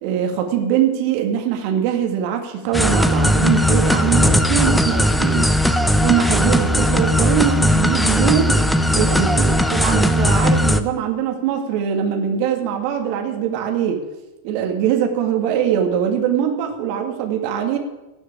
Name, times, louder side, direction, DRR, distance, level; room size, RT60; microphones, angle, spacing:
voice 1, 0.0-5.5 6.0-8.6 8.9-14.0 14.4-17.8, right 9 dB, 45° right, 4 dB, 2.2 m, -22 dB
sound 1, 2.7-10.8, equal, 5° left, 0.9 m, -17 dB
16.5 x 6.3 x 9.2 m, 1.0 s
figure-of-eight pair, 90°, 0 cm